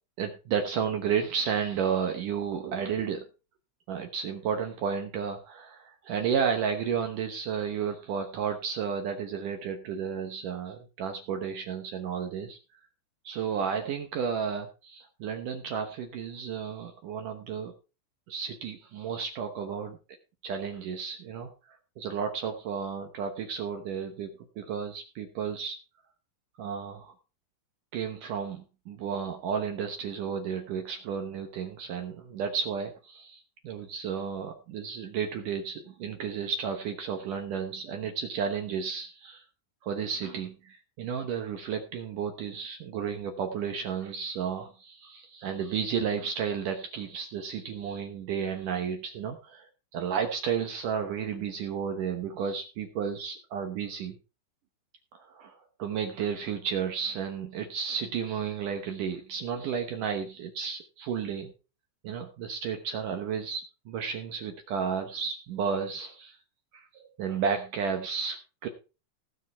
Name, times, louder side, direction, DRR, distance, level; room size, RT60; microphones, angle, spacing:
voice 1, 0.2-3.3 3.9-12.6 13.2-17.7 18.3-20.0 20.4-24.3 24.6-25.8 26.6-27.1 27.9-39.4 39.8-54.2 55.1-61.5 62.0-66.4 66.7-68.7, right 7 dB, 75° right, 5 dB, 1.9 m, -32 dB
17.5 x 6.5 x 4.5 m, 0.32 s
omnidirectional pair, 5.3 m